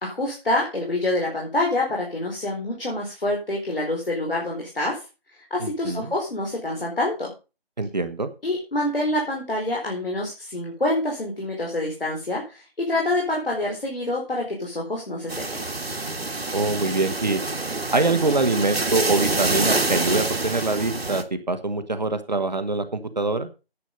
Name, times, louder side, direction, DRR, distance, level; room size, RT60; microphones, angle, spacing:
voice 1, 0.0-5.0 5.5-7.3 8.4-15.7, left 1 dB, 65° left, -1 dB, 4.4 m, -26 dB
voice 2, 5.6-6.1 7.8-8.3 16.5-17.4 17.9-23.5, right 3 dB, 45° right, 9 dB, 1.3 m, -24 dB
sound 1, 15.3-21.2, right 2 dB, 75° right, 1.9 m, -26 dB
10.0 x 8.5 x 5.3 m, 0.31 s
figure-of-eight pair, 170°, 31 cm